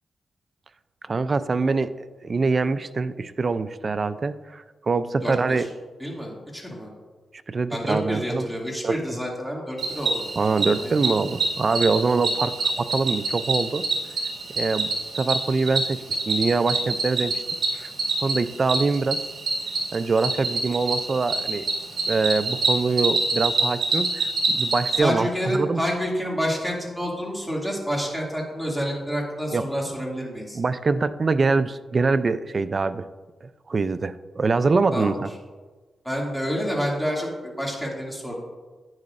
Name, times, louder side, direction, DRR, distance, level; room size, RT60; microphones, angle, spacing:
voice 1, 1.0-1.9 2.2-5.7 7.5-8.5 8.8-9.2 10.4-13.8 14.6-14.9 15.2-17.4 17.7-17.9 18.2-19.2 19.9-21.7 22.1-25.8 29.5-29.6 30.5-33.1 33.7-35.3, right 4 dB, 40° right, 13 dB, 0.4 m, -24 dB
voice 2, 5.2-5.7 6.0-6.9 7.7-10.1 10.7-10.9 25.0-30.6 34.9-35.1 36.0-38.3, equal, ahead, -3 dB, 2.4 m, -28 dB
Cricket, 9.8-25.0, right 3 dB, 60° right, 2.0 m, -26 dB
10.5 x 9.5 x 2.5 m, 1.3 s
cardioid pair, 85°, 0 cm